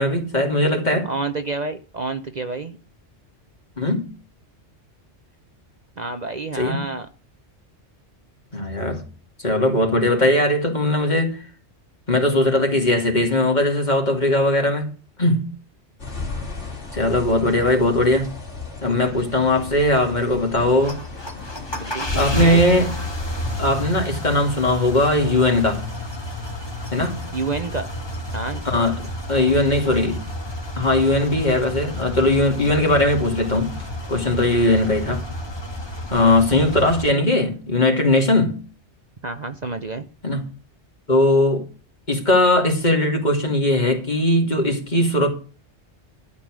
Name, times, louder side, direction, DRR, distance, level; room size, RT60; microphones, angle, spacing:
voice 1, 0.0-1.1 3.8-4.1 6.6-6.9 8.5-9.0 9.4-11.4 12.1-14.9 15.2-15.5 16.9-18.3 18.8-21.0 22.1-22.9 23.6-25.8 26.9-27.2 28.6-30.2 30.8-33.7 34.1-35.2 36.1-38.6 40.2-40.4 41.1-41.6 42.1-45.3, left 1 dB, 40° left, 2.8 m, -19 dB
voice 2, 1.0-2.8 6.0-7.1 21.7-22.8 27.3-27.9 28.3-28.6 39.2-40.1, right 3 dB, 40° right, 0.9 m, -29 dB
sound 1, 16.0-23.8, left 4 dB, 80° left, 3.6 m, -35 dB
sound 2, 20.7-37.1, left 1 dB, 20° left, 1.7 m, -31 dB
12.5 x 7.3 x 6.2 m
omnidirectional pair, 1.2 m